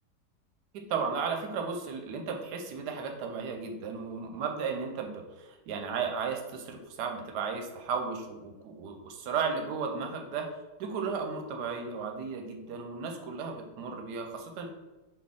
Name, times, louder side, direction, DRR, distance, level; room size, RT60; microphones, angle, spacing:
voice 1, 0.7-10.5 10.8-14.7, right 5 dB, 85° right, 3 dB, 1.2 m, -34 dB
4.2 x 2.9 x 3.5 m, 1.1 s
omnidirectional pair, 1.8 m